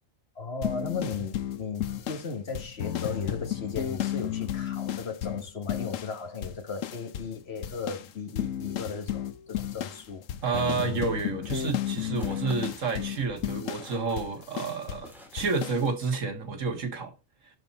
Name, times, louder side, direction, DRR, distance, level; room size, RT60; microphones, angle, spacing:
voice 1, 0.3-10.2, left 5 dB, 55° left, 1.5 m, -36 dB
sound 1, 0.6-6.2 6.4-7.4 7.6-15.1 15.4-15.8, left 11 dB, 80° left, 1.2 m, -33 dB
sound 2, 10.0-16.7, equal, ahead, 2.2 m, -52 dB
voice 2, 10.4-17.1, right 4 dB, 80° right, 2.0 m, -30 dB
11.5 x 4.3 x 4.1 m
omnidirectional pair, 1.3 m